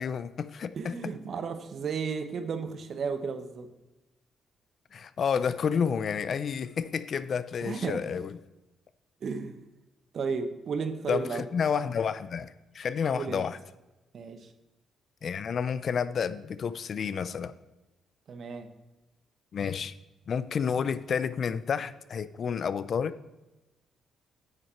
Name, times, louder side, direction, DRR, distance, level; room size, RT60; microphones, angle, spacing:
voice 1, 0.0-1.1 4.9-8.4 11.1-13.6 15.2-17.5 19.5-20.0 20.3-23.2, left 6 dB, 55° left, 0.4 m, -30 dB
voice 2, 0.7-3.7 7.6-8.0 9.2-9.6 10.1-11.5 13.1-13.5 14.1-14.5 18.3-18.7, right 5 dB, 55° right, 0.9 m, -33 dB
8.9 x 6.4 x 4.4 m
cardioid pair, 90°, 0 cm